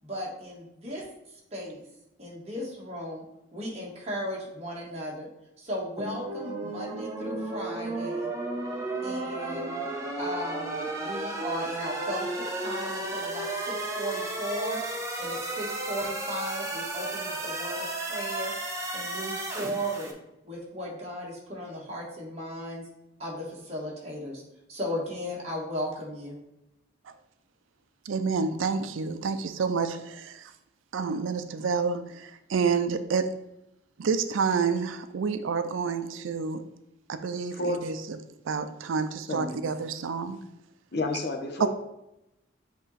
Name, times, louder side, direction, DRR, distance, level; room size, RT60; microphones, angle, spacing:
voice 1, 0.0-1.0 1.5-1.8 2.2-3.2 3.5-5.3 5.6-8.3 9.0-9.8 10.2-14.8 15.2-18.5 18.9-20.1 20.4-22.8 23.2-24.4 24.7-26.4, equal, 35° right, 1.6 m, -36 dB
sound 1, 6.0-20.1, right 2 dB, 15° right, 0.8 m, -33 dB
voice 2, 28.1-30.4 30.9-33.4 34.0-36.6 37.1-38.2 38.5-40.4 41.6-41.7, right 5 dB, 85° right, 0.4 m, -29 dB
voice 3, 39.3-39.6 40.9-41.7, left 2 dB, 55° left, 0.9 m, -30 dB
7.8 x 3.0 x 4.1 m
head